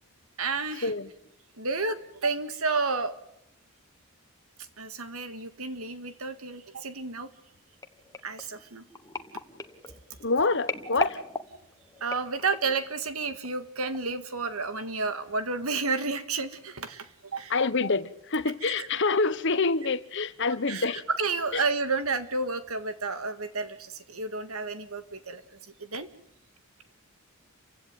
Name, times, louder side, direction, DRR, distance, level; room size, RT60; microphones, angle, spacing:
voice 1, 0.4-0.9 1.6-3.1 4.8-7.3 8.2-8.8 12.0-17.6 18.7-18.9 20.7-25.4 25.8-26.1, right 4 dB, 75° right, 2.0 m, -31 dB
sound 1, 7.8-12.8 13.4-13.7 13.9-14.0, left 2 dB, 15° left, 1.4 m, -37 dB
voice 2, 10.2-11.2 17.5-21.0, left 3 dB, 55° left, 1.2 m, -26 dB
29.0 x 16.5 x 9.2 m
head